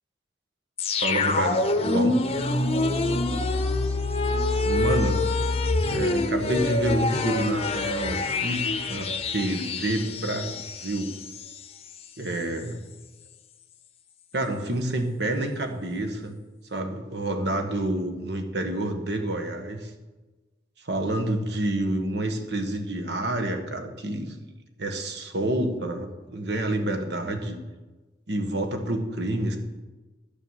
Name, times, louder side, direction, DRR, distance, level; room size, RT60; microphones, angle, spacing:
sound 1, 0.8-11.6 11.9-12.0, left 2 dB, 35° left, 0.8 m, -26 dB
voice 1, 1.0-2.2 4.6-5.2 5.9-11.1 12.2-12.8 14.3-16.3 16.7-19.9 20.8-24.4 24.8-27.6 28.3-29.6, right 1 dB, 65° right, 5 dB, 1.5 m, -28 dB
11.0 x 7.0 x 7.4 m, 1.2 s
head